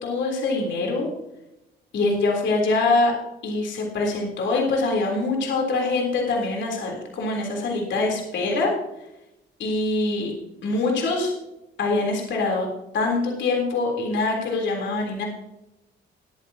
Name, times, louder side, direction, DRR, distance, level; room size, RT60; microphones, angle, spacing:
voice 1, 0.0-1.1 1.9-3.1 3.4-8.7 9.6-10.3 10.6-11.3 11.8-12.7 12.9-15.2, left 3 dB, 70° left, 0 dB, 3.6 m, -24 dB
20.5 x 9.1 x 2.9 m, 0.91 s
cardioid pair, 90°, 20 cm